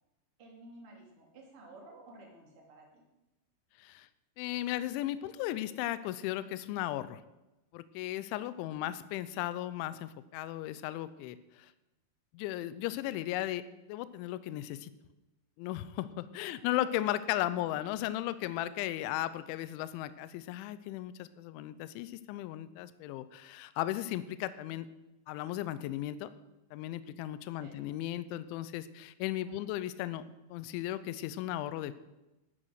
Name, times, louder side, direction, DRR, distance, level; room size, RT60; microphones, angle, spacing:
voice 1, 0.4-3.0 8.7-8.9 16.4-16.9 17.4-17.7 27.6-27.8 29.4-29.8, right 2 dB, 35° right, -1 dB, 2.9 m, -54 dB
voice 2, 4.4-7.2 7.7-11.7 12.3-13.6 13.9-14.9 15.6-24.9 25.3-26.3 26.7-30.2 30.5-31.9, left 14 dB, 85° left, 14 dB, 3.0 m, -36 dB
12.5 x 9.2 x 6.4 m, 0.99 s
omnidirectional pair, 5.5 m